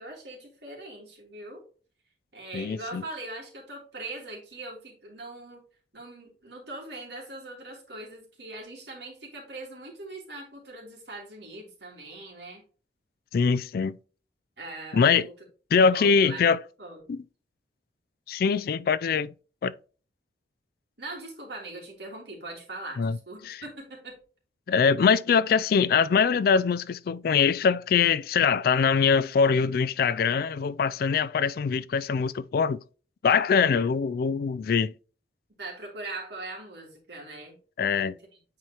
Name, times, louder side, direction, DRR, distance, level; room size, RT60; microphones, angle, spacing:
voice 1, 0.0-1.6 2.3-5.6 5.9-12.6 14.6-15.3 15.9-17.1 21.0-24.1 35.6-37.6 38.0-38.2, right 2 dB, 70° right, 3.2 m, -41 dB
voice 2, 2.5-3.0 13.3-14.0 14.9-15.3 15.7-16.6 17.1-17.2 18.3-19.3 19.6-19.7 23.0-23.2 23.4-23.6 24.7-32.8 33.2-34.9 37.8-38.2, left 6 dB, 55° left, 0.3 m, -23 dB
9.1 x 4.8 x 3.0 m
head